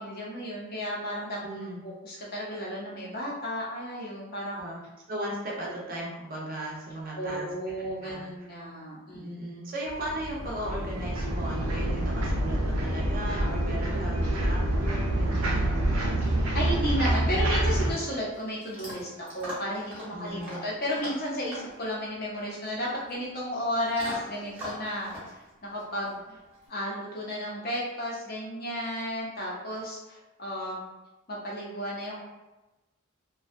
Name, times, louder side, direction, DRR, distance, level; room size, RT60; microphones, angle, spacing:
voice 1, 0.0-1.4 1.8-4.6 7.2-9.2 16.2-25.1 25.6-26.2 26.7-30.8 31.3-32.2, equal, 45° left, -4 dB, 0.6 m, -33 dB
voice 2, 1.4-1.8 4.5-4.8 5.1-7.5 8.0-8.5 9.1-15.8 20.1-20.6, right 1 dB, 40° right, -3 dB, 0.5 m, -37 dB
sound 1, 9.9-17.9, right 1 dB, 85° right, 0.5 m, -27 dB
Chewing mastication / Dog, 17.6-26.7, equal, 5° right, 0.8 m, -44 dB
2.6 x 2.3 x 2.4 m, 1.1 s
head